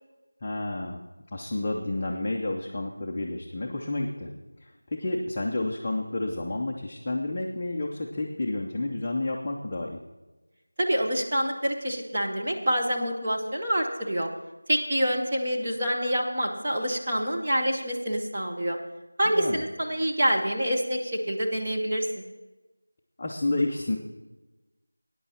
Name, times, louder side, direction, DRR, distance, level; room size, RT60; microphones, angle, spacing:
voice 1, 0.4-1.0 1.3-4.3 4.6-10.0 19.3-19.6 23.2-24.0, left 2 dB, 15° left, -2 dB, 0.5 m, -30 dB
voice 2, 10.8-14.3 14.7-18.8 19.2-22.1, equal, 20° right, -2 dB, 0.9 m, -26 dB
15.0 x 9.6 x 4.2 m, 1.1 s
figure-of-eight pair, 180°, 0 cm